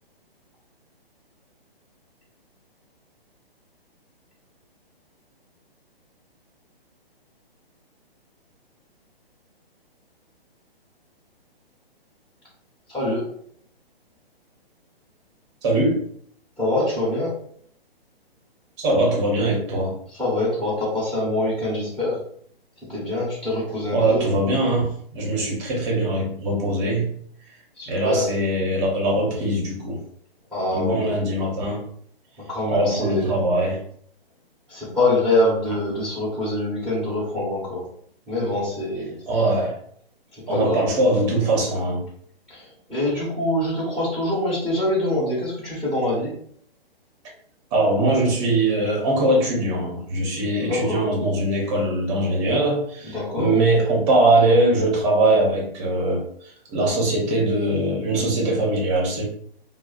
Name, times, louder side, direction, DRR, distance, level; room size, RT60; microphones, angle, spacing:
voice 1, 12.9-13.2 16.6-17.3 20.2-22.2 22.9-24.2 27.8-28.2 30.5-31.1 32.5-33.3 34.7-37.8 38.3-39.2 40.3-40.8 42.5-42.6 42.9-46.3 50.6-51.0 53.0-53.5, left 1 dB, ahead, -11 dB, 1.0 m, -24 dB
voice 2, 15.6-16.0 18.8-19.9 23.9-27.1 27.9-30.0 30.7-31.8 32.7-33.8 39.3-39.8 40.5-42.0 47.7-56.2 56.7-59.2, right 1 dB, 30° right, -1 dB, 1.0 m, -21 dB
2.3 x 2.1 x 3.8 m, 0.62 s
hypercardioid pair, 140°, 30 cm